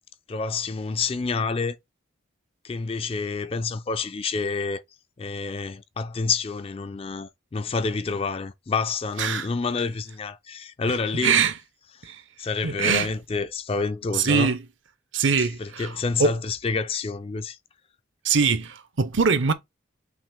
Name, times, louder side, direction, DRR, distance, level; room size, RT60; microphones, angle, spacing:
voice 1, 0.3-1.8 2.6-4.8 5.2-11.4 12.4-14.5 15.4-17.6, left 4 dB, 30° left, 0.3 m, -28 dB
voice 2, 11.2-11.5 12.0-12.2 12.6-13.1 14.1-14.6 15.1-15.9 16.2-16.3 18.2-19.5, right 5 dB, 70° right, 0.7 m, -22 dB
5.9 x 2.4 x 3.6 m
head